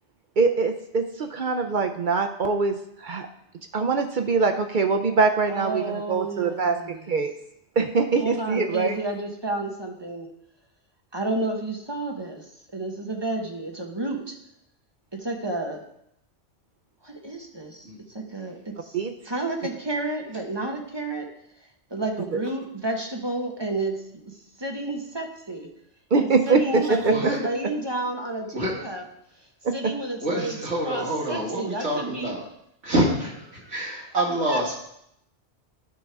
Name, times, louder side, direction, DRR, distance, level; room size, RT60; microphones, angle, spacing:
voice 1, 0.4-3.3 3.7-7.3 7.8-9.0 18.9-19.1 26.1-27.1 29.6-29.9, right 4 dB, 55° right, 6 dB, 0.6 m, -23 dB
voice 2, 5.5-7.1 8.1-10.3 11.1-12.4 12.7-14.3 15.2-15.8 17.0-17.9 18.1-18.6 19.3-21.2 21.9-23.9 24.6-25.7 26.2-29.0 29.7-32.3 33.0-33.9 34.2-34.6, right 2 dB, 25° right, 1 dB, 0.9 m, -31 dB
voice 3, 30.2-32.4 32.8-33.3 33.7-34.7, right 1 dB, 85° right, -3 dB, 2.3 m, -26 dB
11.5 x 5.3 x 3.4 m, 0.76 s
omnidirectional pair, 1.2 m